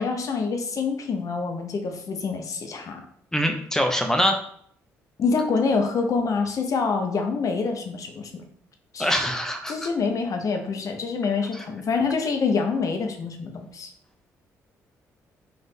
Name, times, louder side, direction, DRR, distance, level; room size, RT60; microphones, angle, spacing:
voice 1, 0.0-3.0 5.2-8.4 8.9-9.1 9.7-13.9, left 4 dB, 55° left, 4 dB, 0.7 m, -26 dB
voice 2, 3.3-4.4 9.0-9.7 11.5-11.6, equal, 5° left, 5 dB, 0.8 m, -23 dB
3.4 x 2.5 x 4.1 m, 0.64 s
supercardioid pair, 55°, 7 cm